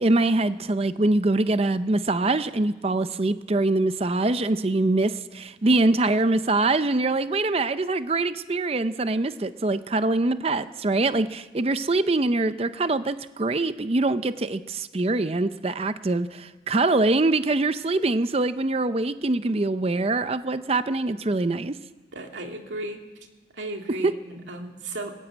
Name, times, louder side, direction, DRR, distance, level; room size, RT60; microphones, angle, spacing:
voice 1, 0.0-21.8 24.0-24.1, right 2 dB, 30° right, 12 dB, 0.5 m, -24 dB
voice 2, 22.1-23.0 23.5-25.1, right 2 dB, 80° right, 3 dB, 2.5 m, -35 dB
19.5 x 15.0 x 8.9 m, 1.2 s
head